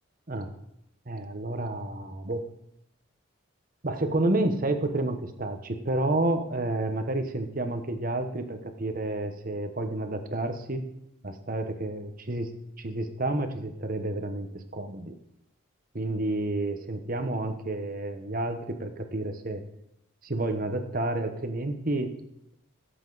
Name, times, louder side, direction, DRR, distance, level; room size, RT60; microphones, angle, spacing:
voice 1, 1.1-2.4 3.8-10.8 11.2-15.1 15.9-19.6 20.2-22.1, right 2 dB, 40° right, 7 dB, 1.1 m, -30 dB
17.0 x 8.1 x 4.0 m, 0.81 s
head